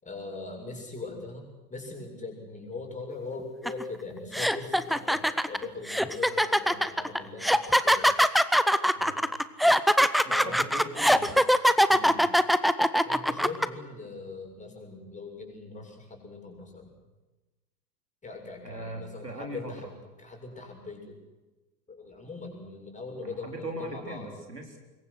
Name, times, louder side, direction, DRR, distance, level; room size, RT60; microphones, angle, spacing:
voice 1, 0.0-8.1 10.3-10.6 11.9-12.2 13.0-16.9 18.2-19.9 20.2-21.2 21.9-24.3, left 3 dB, 15° left, 2 dB, 7.3 m, -41 dB
sound 1, 3.7-3.8 4.3-13.7, equal, ahead, 0.8 m, -22 dB
voice 2, 10.2-11.4 18.6-19.9 23.2-24.8, right 1 dB, 90° right, 3 dB, 4.1 m, -39 dB
26.0 x 22.0 x 6.4 m, 1.1 s
figure-of-eight pair, 85°, 47 cm